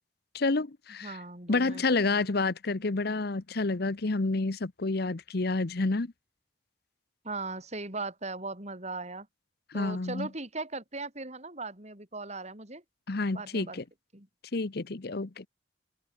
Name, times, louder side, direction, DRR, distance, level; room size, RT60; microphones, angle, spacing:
voice 1, 0.3-1.2 1.5-6.1 9.7-10.3 13.1-13.8 14.5-15.4, left 3 dB, 55° left, 0.9 m, -29 dB
voice 2, 1.0-2.3 7.2-9.3 9.7-12.8 13.3-13.8 14.1-14.3, right 3 dB, 35° right, 6.0 m, -38 dB
head